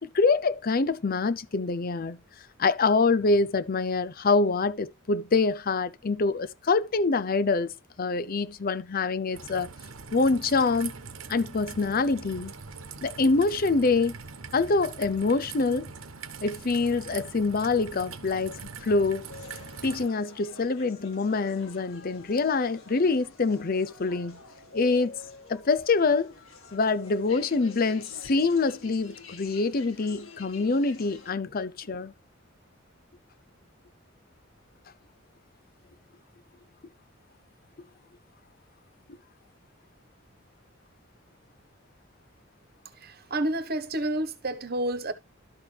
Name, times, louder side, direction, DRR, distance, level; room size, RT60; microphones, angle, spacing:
voice 1, 0.0-2.2 2.6-7.7 8.0-9.7 10.1-10.9 11.3-12.5 13.0-14.2 14.5-15.9 16.4-19.3 19.8-24.4 24.7-25.1 25.5-26.3 26.7-32.1, left 3 dB, 45° left, 0.6 m, -25 dB
Raindrop / Trickle dribble, 9.3-20.1, right 5 dB, 90° right, 1.2 m, -42 dB
sound 1, 19.3-31.3, left 4 dB, 75° left, 2.2 m, -48 dB
voice 2, 42.8-45.1, right 1 dB, 50° right, 1.3 m, -30 dB
12.5 x 6.3 x 3.4 m
head